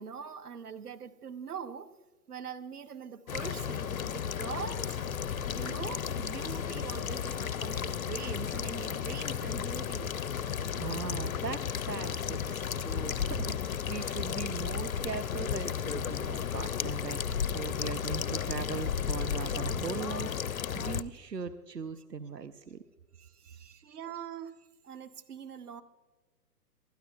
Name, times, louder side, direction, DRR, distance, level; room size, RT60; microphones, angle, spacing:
voice 1, 0.0-1.9 2.3-5.0 5.5-10.2 23.1-25.8, right 7 dB, 70° right, 1.2 m, -43 dB
sound 1, 3.3-21.0, left 8 dB, 60° left, 0.7 m, -34 dB
voice 2, 10.8-22.8 23.4-24.0, right 6 dB, 90° right, 0.8 m, -39 dB
26.0 x 13.0 x 2.4 m
figure-of-eight pair, 120°, 48 cm